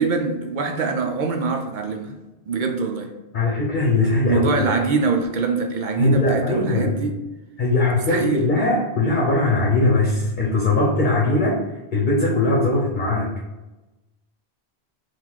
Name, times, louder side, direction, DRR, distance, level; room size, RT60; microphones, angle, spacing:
voice 1, 0.0-2.2 2.5-3.1 4.2-7.2 8.1-8.5, right 4 dB, 55° right, 4 dB, 0.6 m, -23 dB
voice 2, 3.3-4.7 6.0-7.0 7.6-11.6 11.9-13.3, left 2 dB, 50° left, -3 dB, 0.9 m, -20 dB
3.8 x 2.4 x 4.6 m, 1.1 s
omnidirectional pair, 1.1 m